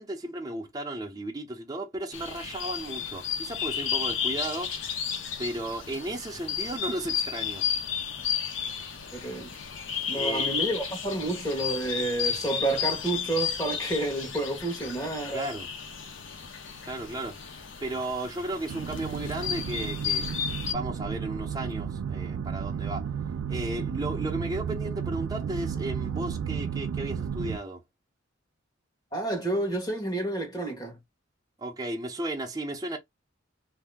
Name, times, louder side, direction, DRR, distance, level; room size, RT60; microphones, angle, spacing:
voice 1, 0.0-4.8 5.4-7.6 10.1-10.5 15.3-15.7 16.9-20.4 20.7-23.1 23.5-27.8 31.6-33.0, right 1 dB, 20° right, 0.6 m, -34 dB
sound 1, 2.1-20.7, left 8 dB, 70° left, 0.7 m, -33 dB
voice 2, 9.1-9.5 10.1-15.5 29.1-31.0, right 2 dB, 20° left, 1.3 m, -30 dB
sound 2, 18.7-27.6, right 7 dB, 85° right, 0.3 m, -33 dB
2.8 x 2.1 x 3.5 m
head